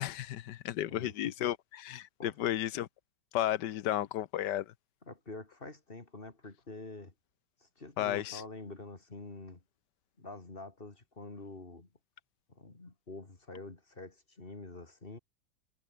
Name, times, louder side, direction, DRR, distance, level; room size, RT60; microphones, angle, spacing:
voice 1, 0.0-2.9 3.3-4.7 8.0-8.4, left 12 dB, 75° left, 1.4 m, -33 dB
voice 2, 0.9-1.3 2.2-2.5 5.1-7.1 7.6-9.6 10.2-11.9 12.5-15.2, left 2 dB, 30° left, 2.8 m, -47 dB
omnidirectional pair, 1.9 m